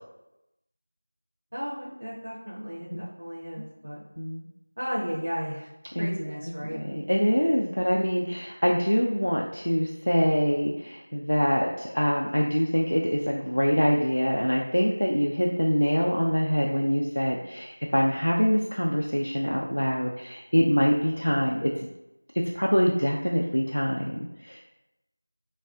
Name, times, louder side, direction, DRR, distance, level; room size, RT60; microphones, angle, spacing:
voice 1, 1.5-4.0 4.8-5.7 6.0-6.8, equal, 55° right, -5 dB, 0.5 m, -34 dB
voice 2, 6.7-21.9 22.5-24.7, equal, 80° left, -1 dB, 0.3 m, -25 dB
3.2 x 2.3 x 2.3 m, 0.94 s
figure-of-eight pair, 175°, 0 cm